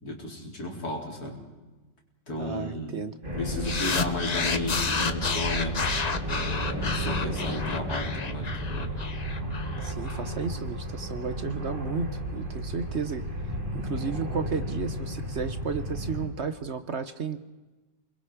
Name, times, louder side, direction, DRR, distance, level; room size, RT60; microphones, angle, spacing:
voice 1, 0.0-1.4 2.3-3.0 3.3-5.9 6.2-8.9, left 2 dB, 55° left, 0 dB, 4.7 m, -34 dB
voice 2, 2.4-3.2 9.8-17.4, right 6 dB, 50° right, 10 dB, 1.0 m, -33 dB
sound 1, 3.2-16.3, equal, 25° right, 3.1 m, -33 dB
sound 2, 3.6-10.2, left 4 dB, 35° left, 0.7 m, -30 dB
29.5 x 22.0 x 5.0 m, 1.2 s
omnidirectional pair, 1.9 m